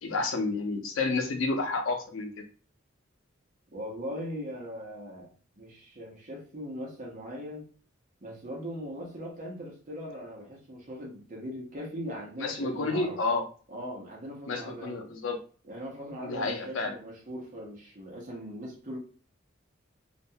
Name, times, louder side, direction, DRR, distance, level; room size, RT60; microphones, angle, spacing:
voice 1, 0.0-2.4 12.4-13.4 14.5-15.4 16.2-16.9, left 3 dB, 85° left, 4 dB, 0.6 m, -30 dB
voice 2, 3.7-7.7 8.2-13.2 13.7-15.1 15.6-19.0, equal, 40° right, -1 dB, 0.8 m, -40 dB
2.5 x 2.2 x 2.6 m, 0.40 s
head